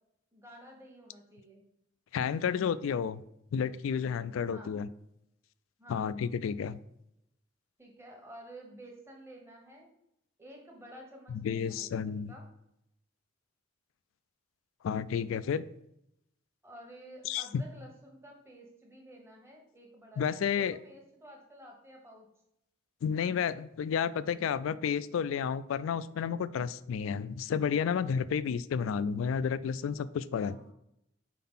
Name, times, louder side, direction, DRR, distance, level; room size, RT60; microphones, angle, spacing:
voice 1, 0.3-1.6 4.5-4.9 5.8-6.1 7.8-9.9 10.4-12.4 16.6-22.3 30.5-30.7, equal, 15° right, 0 dB, 1.0 m, -51 dB
voice 2, 2.1-3.2 3.5-4.9 5.9-6.8 11.3-12.3 14.8-15.7 17.3-17.6 20.2-20.8 23.0-30.6, left 7 dB, 80° left, 16 dB, 0.3 m, -31 dB
4.6 x 3.8 x 5.5 m, 0.78 s
head